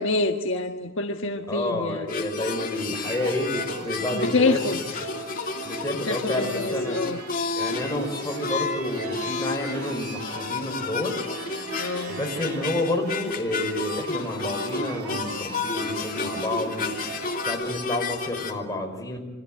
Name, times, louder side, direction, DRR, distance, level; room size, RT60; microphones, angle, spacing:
voice 1, 0.0-2.1 4.1-5.0 5.9-7.2 11.8-12.2, left 3 dB, 60° left, 4 dB, 1.6 m, -27 dB
voice 2, 1.5-5.1 5.6-7.0 7.5-11.2 12.1-19.2, left 1 dB, 15° left, 2 dB, 5.7 m, -30 dB
sound 1, 2.1-18.5, left 4 dB, 40° left, 2.7 m, -32 dB
sound 2, 3.0-17.5, right 4 dB, 85° right, 3.1 m, -39 dB
28.5 x 24.5 x 7.9 m, 1.1 s
head